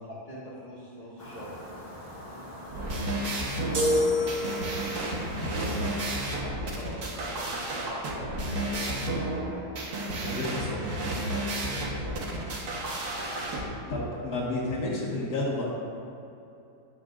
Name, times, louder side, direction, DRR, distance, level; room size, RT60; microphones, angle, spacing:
voice 1, 0.2-1.5 3.9-5.0 6.2-8.3 8.7-9.6 11.6-12.5, equal, 25° left, -9 dB, 1.7 m, -43 dB
sound 1, 1.2-6.4, left 1 dB, 40° left, 1.9 m, -43 dB
sound 2, 2.7-13.6, right 1 dB, 80° right, 1.9 m, -32 dB
sound 3, 3.7-5.1, left 1 dB, 60° right, 1.9 m, -27 dB
voice 2, 5.4-5.8 10.2-10.9 13.9-15.7, left 2 dB, 90° left, -4 dB, 2.2 m, -31 dB
13.5 x 10.5 x 2.5 m, 2.8 s
omnidirectional pair, 1.6 m